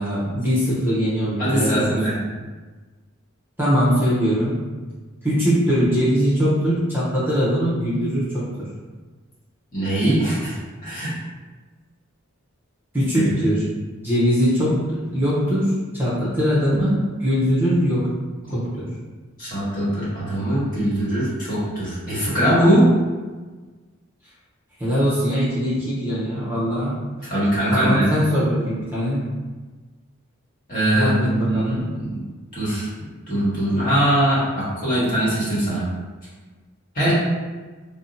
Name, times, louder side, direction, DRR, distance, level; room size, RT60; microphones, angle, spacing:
voice 1, 0.0-2.2 3.6-4.6 5.2-8.7 12.9-13.6 14.0-18.1 18.5-18.9 24.8-27.0 27.7-29.2 30.9-31.9, equal, 10° right, -9 dB, 0.7 m, -21 dB
voice 2, 1.4-2.1 9.7-10.6 10.8-11.1 13.1-13.2 18.4-18.5 19.4-22.9 27.2-28.1 30.7-32.2 32.5-32.9 33.3-35.8 36.9-37.1, right 1 dB, 40° left, -9 dB, 1.3 m, -21 dB
2.7 x 2.1 x 3.8 m, 1.3 s
head